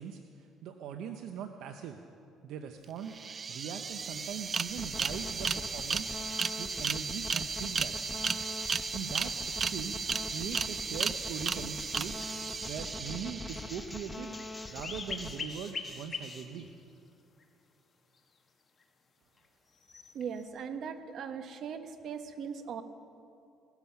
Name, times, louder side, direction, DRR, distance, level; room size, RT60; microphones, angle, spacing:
voice 1, 0.0-2.0 2.4-3.2 3.5-6.1 6.5-8.0 8.9-10.0 10.3-12.2 12.6-14.4 14.7-16.7, right 8 dB, 75° right, 6 dB, 0.8 m, -41 dB
sound 1, 2.8-2.9 3.1-13.9, right 5 dB, 30° right, 0.4 m, -35 dB
sound 2, 4.7-15.4, left 2 dB, 10° left, 1.0 m, -43 dB
sound 3, 14.3-16.7 17.4-17.5 19.8-20.5, left 4 dB, 30° left, 1.5 m, -41 dB
voice 2, 20.1-22.8, right 7 dB, 55° right, 8 dB, 1.2 m, -39 dB
17.5 x 13.0 x 5.8 m, 2.6 s
cardioid pair, 120°, 0 cm